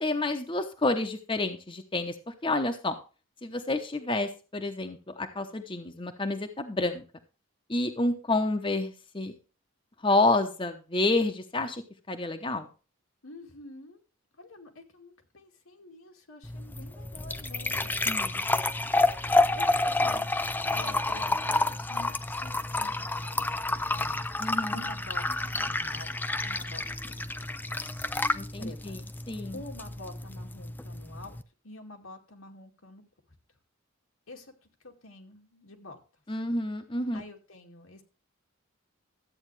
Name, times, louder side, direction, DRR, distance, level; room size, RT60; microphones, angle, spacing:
voice 1, 0.0-3.0 3.4-7.0 7.7-9.3 10.0-12.7 18.0-18.4 24.4-24.8 28.3-29.0 29.3-29.6 36.3-37.2, left 2 dB, 25° left, 6 dB, 0.9 m, -29 dB
voice 2, 13.2-14.0 14.4-18.0 19.3-24.3 24.7-25.2 25.5-26.1 26.4-27.6 28.6-31.4 31.6-33.0 34.3-34.5 34.8-36.0 37.1-38.0, left 2 dB, 90° left, 2 dB, 2.3 m, -48 dB
sound 1, 16.4-31.4, left 2 dB, 10° left, 0.4 m, -29 dB
13.0 x 8.7 x 3.3 m, 0.34 s
head